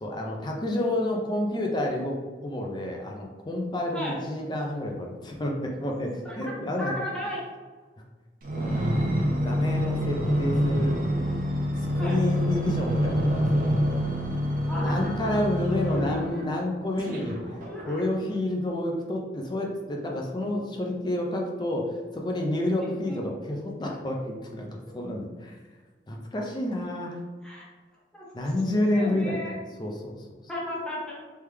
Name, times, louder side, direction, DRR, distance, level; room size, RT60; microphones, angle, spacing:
voice 1, 0.0-6.9 8.6-11.0 11.8-13.7 14.8-17.3 17.9-24.7 24.9-25.6 26.1-27.2 28.3-29.4 29.8-30.3, left 1 dB, 25° left, 0 dB, 0.5 m, -29 dB
voice 2, 6.8-7.4 12.0-12.2 14.6-15.4 15.9-16.5 17.6-18.0 22.8-23.2 27.4-27.6 28.1-29.5 30.5-31.2, left 1 dB, 5° left, -5 dB, 1.0 m, -35 dB
sound 1, 8.4-16.4 17.0-18.3 18.9-19.0, equal, 50° right, 0.7 m, -27 dB
3.3 x 3.3 x 3.3 m, 1.3 s
head